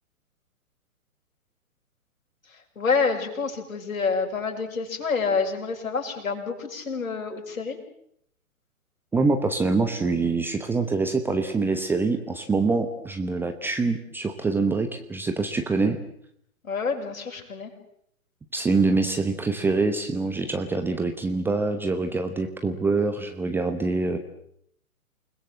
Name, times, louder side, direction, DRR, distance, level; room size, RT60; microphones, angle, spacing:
voice 1, 2.8-7.8 16.6-17.7, left 5 dB, 65° left, 3 dB, 6.4 m, -27 dB
voice 2, 9.1-16.0 18.5-24.2, right 3 dB, 5° right, 6 dB, 0.9 m, -25 dB
29.0 x 20.5 x 7.7 m, 0.71 s
figure-of-eight pair, 125°, 43 cm